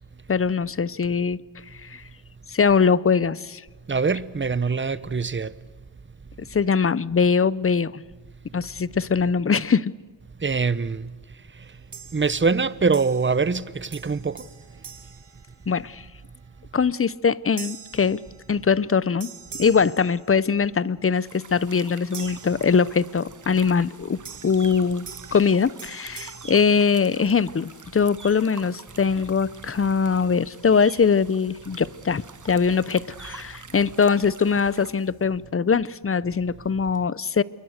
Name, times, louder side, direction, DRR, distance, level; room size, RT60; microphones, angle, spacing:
voice 1, 0.3-1.4 1.8-2.0 2.5-3.6 6.4-8.0 8.5-9.9 15.7-16.0 16.7-18.2 18.5-19.3 19.6-37.4, left 5 dB, 30° left, 0.7 m, -22 dB
voice 2, 3.9-5.5 10.4-11.1 11.5-11.7 12.1-14.5, right 4 dB, 25° right, 0.9 m, -24 dB
sound 1, 11.9-12.6 12.9-13.6 13.9-16.1 16.6-16.9 17.6-18.9 19.2-20.8 22.1-23.3 24.2-27.5, right 6 dB, 65° right, 3.0 m, -44 dB
sound 2, 21.1-34.9, right 5 dB, 40° right, 1.4 m, -46 dB
sound 3, 27.2-35.2, left 5 dB, 75° left, 4.1 m, -54 dB
27.5 x 23.0 x 6.6 m
cardioid pair, 75°, 45 cm